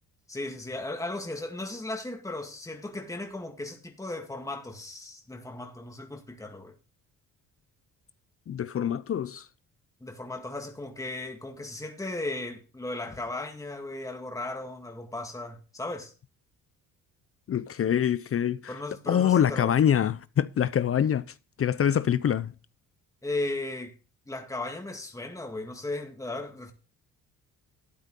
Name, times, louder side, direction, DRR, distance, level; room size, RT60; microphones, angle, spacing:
voice 1, 0.3-6.8 10.0-16.1 18.7-19.7 23.2-23.9 24.3-26.7, left 2 dB, 10° left, 2.0 m, -36 dB
voice 2, 8.5-9.5 17.5-18.7 19.1-21.2 21.6-22.5, left 9 dB, 40° left, 0.6 m, -25 dB
12.5 x 8.9 x 3.8 m
supercardioid pair, 70°, 35 cm